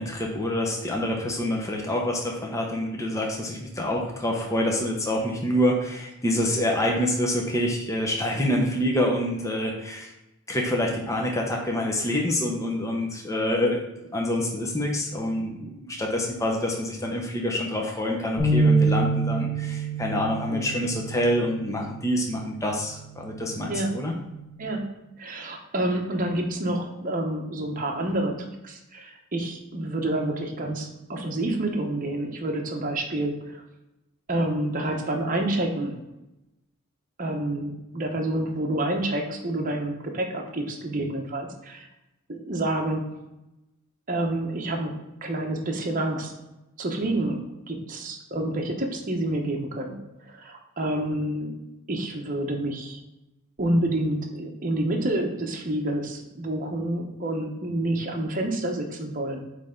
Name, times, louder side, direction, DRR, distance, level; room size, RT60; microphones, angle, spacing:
voice 1, 0.0-10.1 10.5-13.8 14.1-24.1, left 1 dB, 15° left, 0 dB, 0.7 m, -26 dB
sound 1, 18.4-24.6, right 3 dB, 5° right, 2.3 m, -27 dB
voice 2, 20.5-20.8 23.7-23.9 24.6-33.6 34.3-36.0 37.2-41.9 42.3-43.1 44.1-46.3 46.8-51.6 51.9-53.0 53.6-59.4, right 1 dB, 40° right, 2 dB, 0.9 m, -28 dB
8.2 x 3.3 x 3.7 m, 0.95 s
head